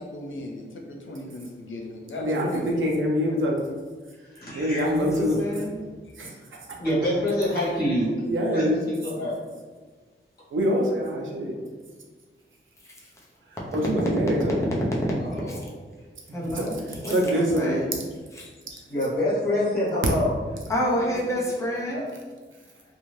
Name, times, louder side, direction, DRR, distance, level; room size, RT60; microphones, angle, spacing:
voice 1, 0.0-2.8 18.4-18.8, left 1 dB, 70° left, 0 dB, 0.5 m, -38 dB
voice 2, 2.2-3.6 4.5-5.3 6.2-6.3 8.3-8.8 10.5-11.5 13.7-14.6 16.4-16.7 17.1-17.8, equal, 70° right, -1 dB, 0.6 m, -24 dB
voice 3, 4.3-4.9 6.2-6.5 6.8-8.1 8.5-9.3 15.2-15.6 18.9-20.4 21.0-21.2 21.9-22.1, equal, 45° left, -8 dB, 1.2 m, -26 dB
voice 4, 4.9-5.8 15.5-15.6 16.3-17.9 18.3-18.5 20.7-22.1, equal, 15° left, -5 dB, 0.6 m, -29 dB
2.6 x 2.4 x 3.1 m, 1.4 s
wide cardioid pair, 120°, 21 cm